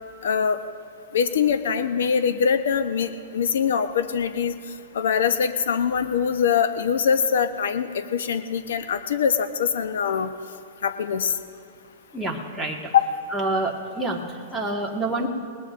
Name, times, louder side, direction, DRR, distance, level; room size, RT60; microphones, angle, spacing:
voice 1, 0.2-0.6 1.1-4.5 4.9-10.3 10.8-11.3 12.9-13.1, left 7 dB, 80° left, 9 dB, 0.8 m, -23 dB
voice 2, 12.1-12.9 13.3-15.3, right 2 dB, ahead, -4 dB, 1.7 m, -27 dB
27.0 x 19.0 x 2.6 m, 2.2 s
hypercardioid pair, 150°, 0 cm